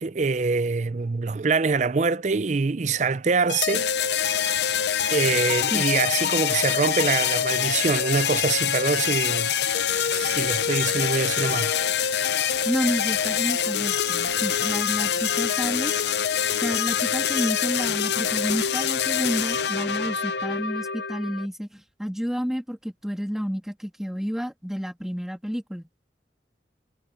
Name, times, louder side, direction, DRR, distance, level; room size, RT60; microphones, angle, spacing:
voice 1, 0.0-3.9 5.1-9.5 10.1-11.7, right 4 dB, 40° right, 0.5 m, -24 dB
sound 1, 3.5-21.5, left 8 dB, 75° left, 0.7 m, -25 dB
sound 2, 9.9-15.4, left 4 dB, 15° left, 1.3 m, -47 dB
voice 2, 12.6-15.9 16.6-26.0, equal, 5° right, 2.2 m, -30 dB
head